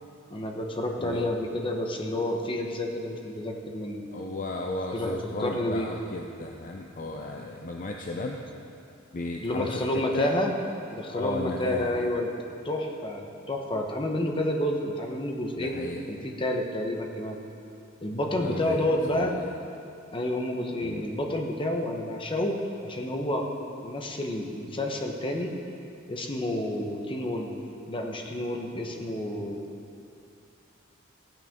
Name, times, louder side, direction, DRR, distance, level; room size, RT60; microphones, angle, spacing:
voice 1, 0.3-4.0 4.9-5.9 9.4-10.5 10.9-12.3 12.6-17.4 18.0-19.4 20.1-22.6 22.8-23.5 23.8-25.5 26.1-27.5 27.9-29.6, left 1 dB, 25° left, 2 dB, 1.0 m, -29 dB
voice 2, 4.1-8.4 9.1-10.3 11.1-12.1 15.6-16.0 18.3-19.5 20.8-21.1, left 2 dB, 40° left, 1 dB, 0.6 m, -35 dB
15.5 x 8.9 x 3.6 m, 2.6 s
head